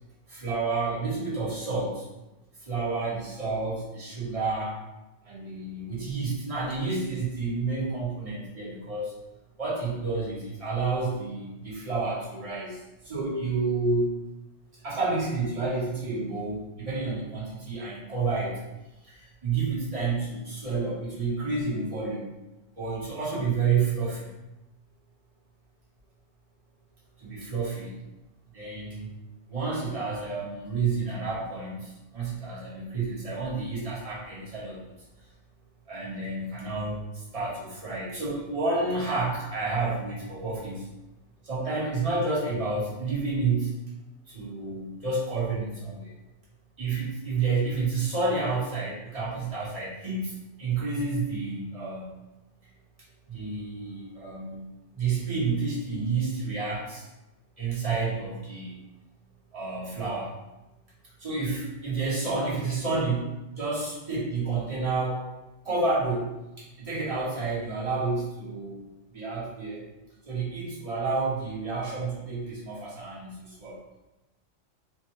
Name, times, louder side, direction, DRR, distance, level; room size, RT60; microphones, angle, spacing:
voice 1, 0.3-2.1 2.6-4.8 5.2-9.1 9.6-14.2 14.8-18.6 19.0-22.3 22.8-24.3 27.2-28.0 28.5-29.1 29.5-34.8 35.9-40.9 41.4-43.8 44.3-46.1 46.8-52.2 53.3-54.6 54.9-57.1 57.6-58.8 59.5-60.3 61.2-65.3 65.6-66.3 66.8-68.8 69.1-69.8 70.2-73.8, right 3 dB, 30° right, -7 dB, 1.1 m, -30 dB
4.6 x 2.2 x 3.0 m, 0.99 s
omnidirectional pair, 1.3 m